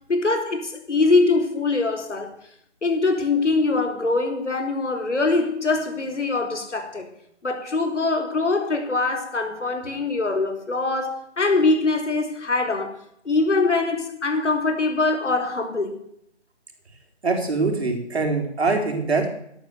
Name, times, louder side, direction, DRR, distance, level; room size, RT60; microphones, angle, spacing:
voice 1, 0.1-2.3 2.8-7.1 7.4-12.9 13.2-16.0, left 3 dB, 85° left, 4.3 m, -23 dB
voice 2, 17.2-19.3, right 3 dB, 65° right, 4.4 m, -23 dB
12.0 x 12.0 x 7.0 m
hypercardioid pair, 175°, 35 cm